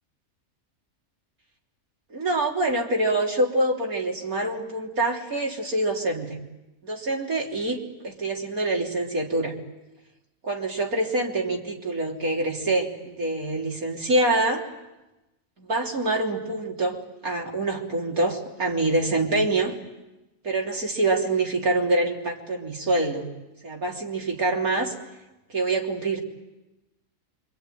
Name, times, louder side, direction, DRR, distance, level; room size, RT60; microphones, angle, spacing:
voice 1, 2.1-6.4 6.8-7.8 8.0-9.5 10.4-14.6 15.6-19.7 20.4-23.3 23.6-24.9 25.5-26.2, right 2 dB, 90° right, 0 dB, 3.8 m, -25 dB
26.5 x 24.5 x 9.2 m, 1.0 s
omnidirectional pair, 1.5 m